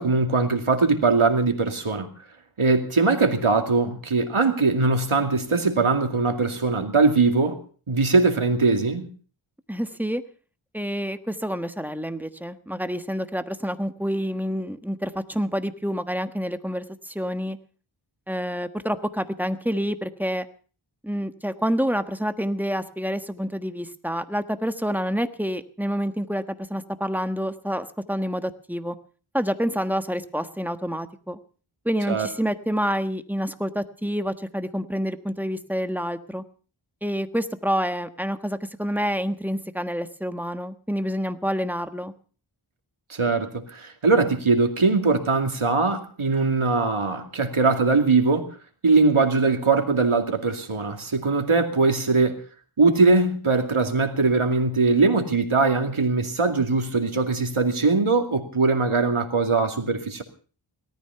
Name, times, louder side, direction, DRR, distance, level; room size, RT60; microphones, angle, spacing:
voice 1, 0.0-2.1 2.6-7.6 7.9-9.1 32.1-32.3 43.1-48.5 48.8-52.4 52.8-60.2, right 3 dB, 80° right, 2.5 m, -21 dB
voice 2, 9.7-10.2 10.7-17.6 18.3-20.4 21.0-29.0 29.3-31.4 31.8-36.4 37.0-42.1, equal, 5° right, 1.3 m, -28 dB
18.0 x 13.5 x 5.7 m
wide cardioid pair, 55°, 48 cm